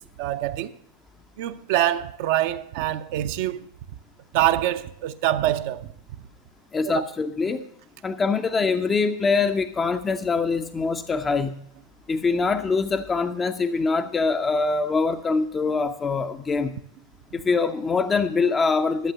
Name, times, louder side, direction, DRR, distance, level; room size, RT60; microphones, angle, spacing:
voice 1, 0.2-0.7 1.4-3.7 4.3-5.9 6.8-7.1, right 13 dB, 50° right, 0.5 m, -25 dB
voice 2, 6.7-7.6 8.0-11.5 12.1-16.8 17.3-19.1, left 4 dB, 15° left, 0.5 m, -24 dB
11.5 x 7.8 x 6.5 m
figure-of-eight pair, 90°, 0 cm